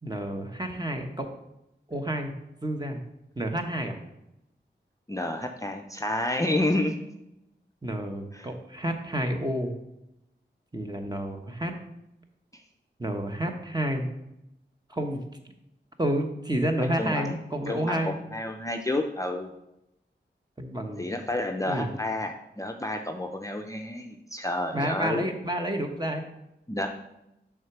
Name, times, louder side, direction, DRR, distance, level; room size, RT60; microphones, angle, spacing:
voice 1, 0.0-1.3 1.9-2.3 2.6-3.0 3.4-4.0 7.8-9.7 10.7-11.7 13.0-14.1 14.9-15.2 16.0-18.1 20.6-21.0 21.7-21.9 24.7-26.3, right 1 dB, 20° right, 4 dB, 1.0 m, -30 dB
voice 2, 5.1-6.9 8.3-8.5 12.5-12.6 17.0-17.4 17.7-19.5 21.0-25.3 26.7-26.9, left 1 dB, 15° left, 3 dB, 0.5 m, -30 dB
6.3 x 3.6 x 5.9 m, 0.86 s
wide cardioid pair, 55°, 19 cm